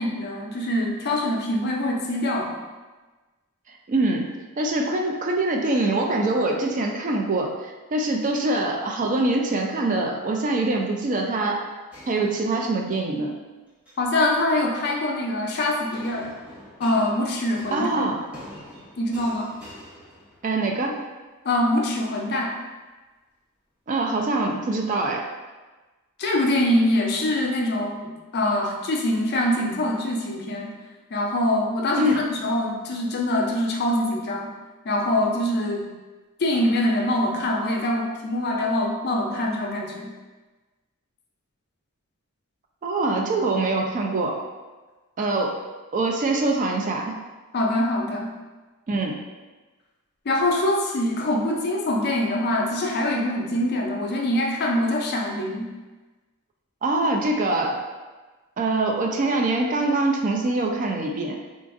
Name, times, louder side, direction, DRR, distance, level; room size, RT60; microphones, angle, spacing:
voice 1, 0.0-2.6 14.0-16.4 16.8-18.1 19.0-19.5 21.4-22.5 26.2-30.7 31.1-34.5 34.8-35.9 36.4-40.1 47.5-48.3 50.3-55.7, left 1 dB, 50° left, 0 dB, 0.5 m, -24 dB
voice 2, 3.9-11.7 12.1-13.4 17.7-18.2 20.4-21.0 23.9-25.3 32.0-32.2 42.8-44.4 45.2-45.6 45.9-47.1 48.9-49.2 56.8-57.8 58.6-61.4, right 2 dB, 35° right, 2 dB, 0.3 m, -24 dB
sound 1, 11.9-13.0 13.7-14.2 15.9-20.8, equal, 5° right, 0.7 m, -45 dB
3.8 x 2.5 x 2.4 m, 1.2 s
head